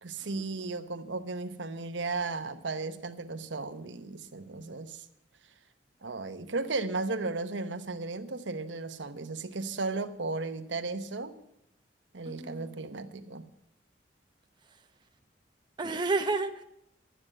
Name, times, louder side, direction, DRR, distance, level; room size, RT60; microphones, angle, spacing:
voice 1, 0.0-5.0 6.0-11.3 12.1-13.4, right 3 dB, 80° right, 10 dB, 1.0 m, -35 dB
voice 2, 12.3-12.8 15.8-16.6, right 3 dB, 25° right, 6 dB, 0.7 m, -31 dB
12.0 x 9.5 x 7.8 m, 0.78 s
head